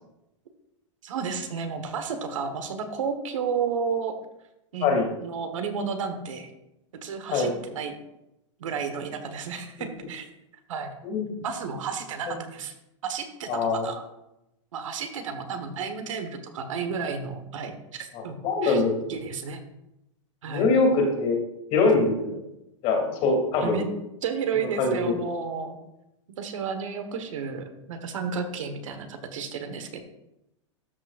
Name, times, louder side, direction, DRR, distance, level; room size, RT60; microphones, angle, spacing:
voice 1, 1.0-4.1 4.7-5.0 5.2-6.5 7.0-7.9 8.6-10.3 10.7-10.9 11.4-12.7 13.0-14.0 14.7-18.8 19.1-19.6 20.4-20.7 23.6-23.9 24.2-25.8 26.4-30.0, right 6 dB, 80° right, 7 dB, 1.3 m, -32 dB
voice 2, 13.5-13.9 18.1-18.9 20.5-21.4 21.7-22.4 22.8-23.8 24.6-25.1, left 3 dB, 40° left, 1 dB, 2.7 m, -23 dB
13.0 x 6.2 x 2.5 m, 0.88 s
hypercardioid pair, 135°, 16 cm